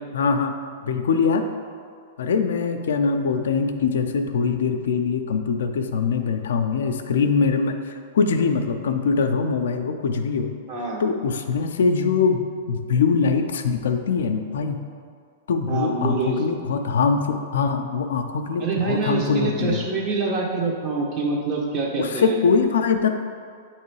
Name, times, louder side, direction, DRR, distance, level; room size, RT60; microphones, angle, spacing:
voice 1, 0.1-0.5 0.8-1.4 2.2-10.5 11.0-12.4 12.7-14.8 15.5-19.8 22.0-23.1, left 5 dB, 80° left, 6 dB, 0.5 m, -22 dB
voice 2, 10.7-11.0 15.7-16.4 18.6-22.4, right 3 dB, 35° right, -1 dB, 1.2 m, -26 dB
7.9 x 3.0 x 4.6 m, 2.2 s
hypercardioid pair, 130°, 0 cm